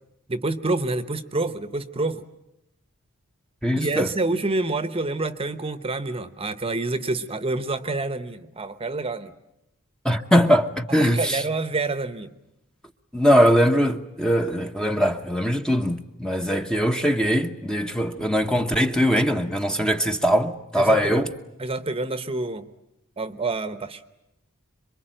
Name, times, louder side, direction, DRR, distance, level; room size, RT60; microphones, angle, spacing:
voice 1, 0.3-2.2 3.8-9.3 10.9-12.3 20.8-21.3 21.6-22.7 23.2-24.0, right 2 dB, 25° right, 1.0 m, -27 dB
voice 2, 3.6-4.1 10.0-11.4 13.1-21.3, equal, 5° left, 0.9 m, -21 dB
26.5 x 23.5 x 8.9 m
head